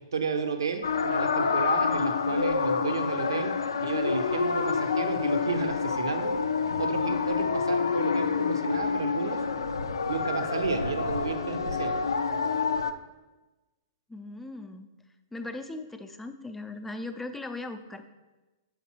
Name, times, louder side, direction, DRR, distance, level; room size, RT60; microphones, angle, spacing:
voice 1, 0.0-3.5 3.8-6.4 6.8-9.4 10.1-11.9, right 4 dB, 85° right, 6 dB, 0.7 m, -32 dB
sound 1, 0.8-12.9, left 5 dB, 90° left, 0.4 m, -28 dB
voice 2, 14.1-14.9 15.3-18.1, left 2 dB, 5° left, 8 dB, 0.4 m, -38 dB
7.2 x 5.2 x 2.9 m, 1.1 s
hypercardioid pair, 125°, 2 cm